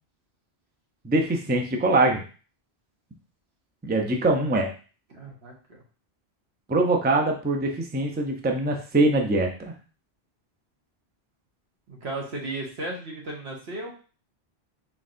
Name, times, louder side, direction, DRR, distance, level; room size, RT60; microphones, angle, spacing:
voice 1, 1.0-2.2 3.8-4.7 6.7-9.7, right 2 dB, 15° right, 2 dB, 0.4 m, -23 dB
voice 2, 5.1-5.8 11.9-13.9, right 2 dB, 75° right, -1 dB, 1.4 m, -35 dB
4.1 x 4.1 x 2.5 m, 0.37 s
omnidirectional pair, 1.1 m